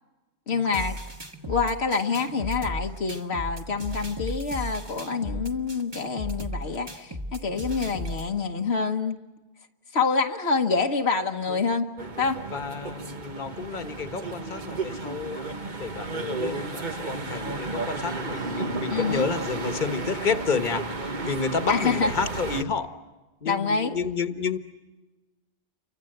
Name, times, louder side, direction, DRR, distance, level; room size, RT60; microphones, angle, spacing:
voice 1, 0.5-1.0 1.5-9.2 9.9-11.9 12.2-12.4 18.9-19.3 21.7-22.1 23.4-24.0, left 4 dB, 75° left, 4 dB, 1.4 m, -26 dB
sound 1, 0.7-8.3, equal, 25° right, 1.6 m, -36 dB
sound 2, 12.0-22.6, right 3 dB, 45° right, 1.5 m, -33 dB
voice 2, 12.5-22.9 23.4-24.6, left 5 dB, 45° left, 9 dB, 1.5 m, -30 dB
30.0 x 24.5 x 7.9 m, 1.2 s
omnidirectional pair, 1.1 m